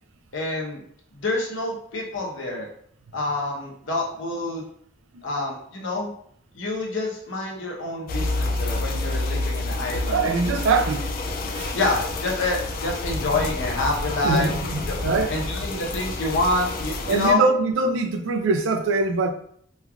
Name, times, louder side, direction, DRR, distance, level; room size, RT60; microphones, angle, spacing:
voice 1, 0.3-0.8 1.1-2.7 3.1-4.6 5.2-6.1 6.5-10.3 11.7-14.5 14.9-15.0 15.3-17.4, left 2 dB, 85° left, 0.8 m, -27 dB
sound 1, 8.1-17.3, left 2 dB, 50° left, 0.3 m, -29 dB
voice 2, 10.1-11.1 11.5-11.7 14.2-15.3 17.1-19.3, right 3 dB, 80° right, 0.4 m, -23 dB
3.1 x 2.4 x 2.3 m
head